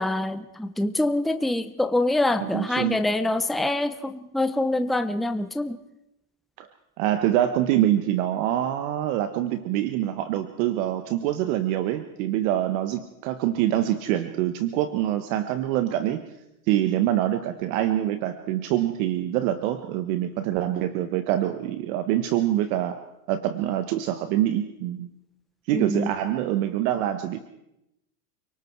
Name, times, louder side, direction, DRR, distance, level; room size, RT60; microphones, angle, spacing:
voice 1, 0.0-5.8 25.7-26.1, left 1 dB, ahead, 9 dB, 0.9 m, -25 dB
voice 2, 2.4-3.0 6.6-6.7 7.0-16.2 16.7-23.0 23.3-25.1 25.7-27.4, right 12 dB, 70° right, 9 dB, 1.6 m, -25 dB
29.5 x 19.0 x 4.7 m, 0.87 s
supercardioid pair, 120°, 43 cm